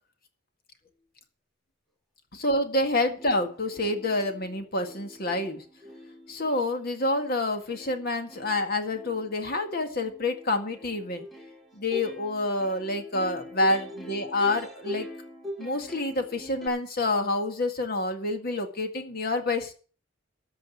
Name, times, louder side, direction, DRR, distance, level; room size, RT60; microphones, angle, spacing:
voice 1, 2.3-5.6 6.3-11.3 11.7-15.1 15.6-19.7, left 2 dB, 50° left, 6 dB, 1.9 m, -28 dB
Plucked string instrument, 3.2-16.7, equal, ahead, 2.2 m, -43 dB
14.0 x 5.3 x 9.2 m, 0.40 s
head